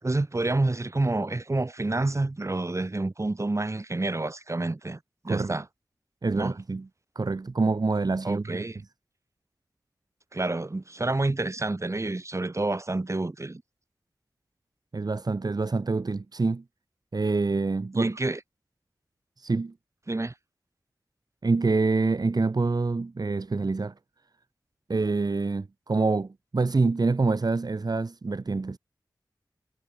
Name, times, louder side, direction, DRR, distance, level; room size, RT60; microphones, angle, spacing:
voice 1, 0.0-5.6 6.4-6.5 8.2-8.8 10.3-13.6 17.9-18.4 20.1-20.3, right 2 dB, 40° right, 5.0 m, -28 dB
voice 2, 5.3-5.6 6.2-6.9 7.2-8.6 14.9-16.6 17.1-18.1 19.4-19.7 21.4-23.9 24.9-28.8, right 3 dB, 55° right, 1.9 m, -26 dB
wide cardioid pair, 65°, 8 cm